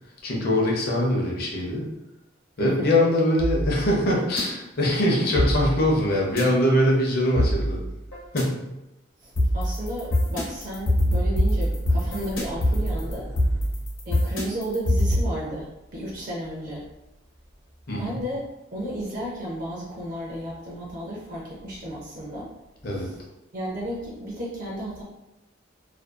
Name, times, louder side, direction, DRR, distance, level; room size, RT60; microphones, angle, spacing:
voice 1, 0.2-1.8 2.6-7.8 8.3-8.7 17.9-18.2 22.8-23.1, left 1 dB, 55° left, -2 dB, 0.6 m, -22 dB
voice 2, 2.6-2.9 9.2-13.3 14.1-16.9 17.9-18.4 18.7-22.5 22.9-23.2 23.5-25.0, equal, 45° right, -4 dB, 0.5 m, -33 dB
sound 1, 3.4-4.4 5.4-6.4 7.4-8.4 9.4-15.2, equal, 85° left, 0.9 m, -24 dB
sound 2, 10.3-13.7, equal, 10° left, 0.4 m, -41 dB
2.5 x 2.3 x 2.4 m, 0.93 s
head